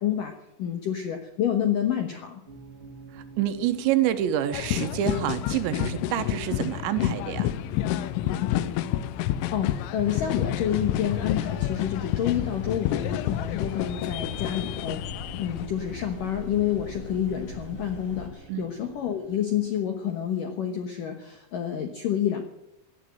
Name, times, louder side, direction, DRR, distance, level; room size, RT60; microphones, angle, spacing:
voice 1, 0.0-2.4 9.5-15.1 15.4-22.4, left 9 dB, 75° left, 5 dB, 2.0 m, -28 dB
sound 1, 2.5-19.9, right 3 dB, 30° right, 1.2 m, -49 dB
voice 2, 3.1-7.5 18.5-18.6, right 11 dB, 75° right, 10 dB, 3.1 m, -27 dB
sound 2, 4.5-15.7, left 13 dB, 90° left, 3.3 m, -29 dB
sound 3, 10.2-18.3, left 2 dB, 45° left, 2.7 m, -41 dB
17.0 x 11.0 x 7.7 m, 0.87 s
omnidirectional pair, 5.6 m